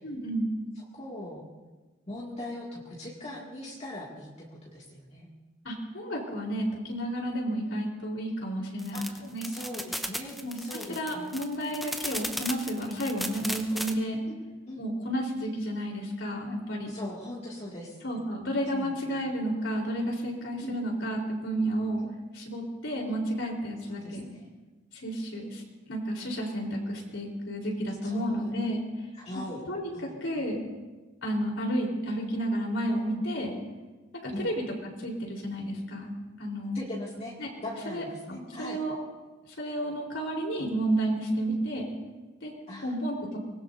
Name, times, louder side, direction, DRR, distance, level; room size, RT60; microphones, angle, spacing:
voice 1, 0.0-0.5 5.6-9.5 10.4-14.2 14.8-16.9 18.0-22.0 22.3-24.3 24.9-28.8 29.7-30.6 31.2-33.5 34.2-34.6 35.0-36.1 36.4-36.8 37.4-37.5 37.9-39.0 39.5-41.9 42.4-42.5 42.8-43.4, right 1 dB, 75° left, 0 dB, 4.1 m, -31 dB
voice 2, 0.9-1.4 2.1-5.3 8.9-9.1 9.4-11.4 14.3-14.4 14.7-14.8 16.9-18.0 18.7-19.0 20.6-20.7 22.0-22.1 23.9-24.5 28.0-28.5 29.2-29.6 29.9-30.2 33.1-33.2 34.3-34.5 36.7-37.4 37.6-38.8 41.5-41.6 42.7-42.9, left 1 dB, 35° left, -5 dB, 2.4 m, -40 dB
sound 1, 8.8-13.9, equal, ahead, 1.0 m, -35 dB
24.0 x 20.5 x 2.7 m, 1.2 s
head